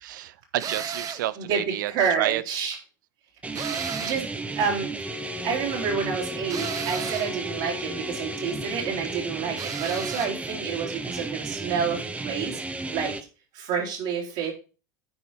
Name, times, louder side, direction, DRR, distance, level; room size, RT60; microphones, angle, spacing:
voice 1, 0.0-2.4, right 13 dB, 80° right, 0.6 m, -30 dB
sound 1, 0.6-1.3 3.5-4.3 6.5-7.4 9.6-10.4, right 7 dB, 35° right, 1.1 m, -33 dB
voice 2, 1.4-2.8 4.0-4.3 4.5-4.9 5.4-12.6 12.9-13.1 13.5-14.5, right 6 dB, 65° right, 3.4 m, -29 dB
sound 2, 3.4-13.2, right 3 dB, 15° right, 0.9 m, -34 dB
Wind instrument woodwind instrument, 5.0-9.5, left 6 dB, 15° left, 1.2 m, -39 dB
9.7 x 4.5 x 5.4 m
hypercardioid pair, 100°, 10 cm